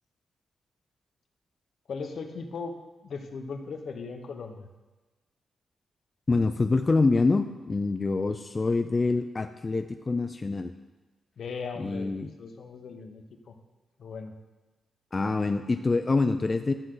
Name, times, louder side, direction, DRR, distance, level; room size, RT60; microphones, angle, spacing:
voice 1, 1.9-2.7 3.0-4.7 11.4-13.5 14.0-14.3, left 4 dB, 60° left, 5 dB, 1.0 m, -38 dB
voice 2, 6.3-10.7 11.8-12.3 15.1-16.7, left 3 dB, 25° left, 8 dB, 0.4 m, -26 dB
12.0 x 7.7 x 3.9 m, 1.2 s
wide cardioid pair, 130°, 0 cm